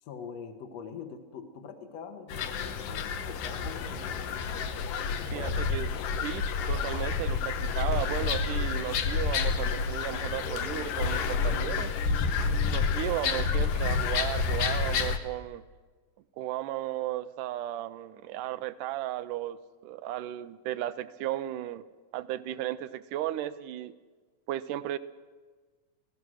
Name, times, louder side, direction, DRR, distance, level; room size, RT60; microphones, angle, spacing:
voice 1, 0.0-4.4 5.0-5.7, left 6 dB, 55° left, 5 dB, 2.3 m, -44 dB
sound 1, 2.3-15.2, left 5 dB, 75° left, 2.7 m, -29 dB
voice 2, 5.3-5.9 6.2-11.9 12.7-15.6 16.4-19.6 19.8-21.8 22.1-23.9 24.5-25.0, right 13 dB, 75° right, 14 dB, 2.2 m, -35 dB
28.5 x 17.0 x 6.4 m, 1.4 s
omnidirectional pair, 3.9 m